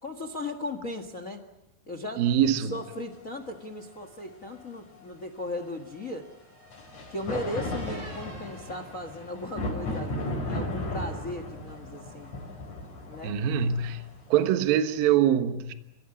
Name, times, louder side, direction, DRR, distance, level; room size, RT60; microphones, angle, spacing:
voice 1, 0.0-1.4 1.9-2.3 2.7-6.3 7.1-12.3 13.1-13.4, left 1 dB, 65° left, 0.8 m, -37 dB
voice 2, 2.2-2.8 13.2-14.0 14.3-15.7, right 9 dB, 65° right, 2.9 m, -24 dB
sound 1, 2.8-2.9 6.7-15.0, left 1 dB, 45° left, 6.7 m, -35 dB
sound 2, 4.5-9.9, right 2 dB, 35° right, 3.3 m, -52 dB
30.0 x 17.0 x 9.9 m
omnidirectional pair, 4.7 m